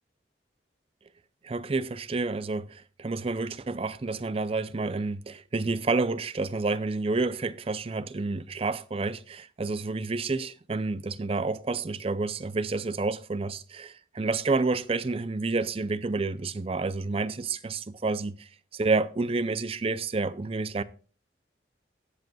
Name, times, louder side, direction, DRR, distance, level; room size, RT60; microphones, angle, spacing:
voice 1, 1.4-20.8, right 3 dB, 30° right, 0.5 m, -29 dB
18.5 x 7.8 x 2.3 m
head